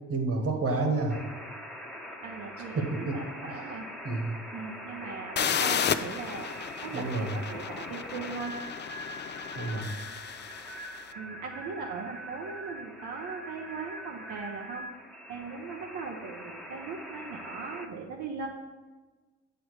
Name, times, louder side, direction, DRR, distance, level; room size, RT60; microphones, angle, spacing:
voice 1, 0.1-1.2 2.7-3.2 3.5-3.6 4.0-4.4 6.9-7.3 9.5-9.9, right 3 dB, 50° right, 3 dB, 1.5 m, -29 dB
sound 1, 1.1-17.9, equal, 5° left, 1.0 m, -43 dB
voice 2, 2.2-3.9 4.5-6.5 6.8-8.5 11.1-14.8 15.3-18.5, right 4 dB, 75° right, -1 dB, 0.9 m, -39 dB
sound 2, 5.4-11.0, left 8 dB, 35° left, 0.4 m, -33 dB
8.9 x 4.7 x 4.8 m, 1.3 s
cardioid pair, 90°, 30 cm